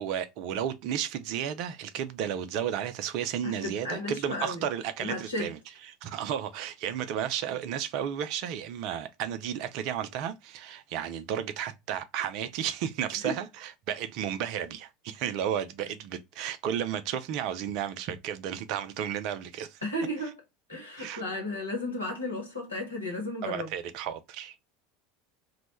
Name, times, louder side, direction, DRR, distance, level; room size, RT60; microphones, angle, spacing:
voice 1, 0.0-5.6 5.9-19.9 21.0-21.2 23.4-24.5, right 9 dB, 50° right, 0.3 m, -33 dB
voice 2, 3.4-4.6 5.0-5.5 13.2-13.4 19.8-20.4 20.7-23.7, left 1 dB, 80° left, 0.9 m, -34 dB
2.1 x 2.0 x 2.9 m
figure-of-eight pair, 75°, 0 cm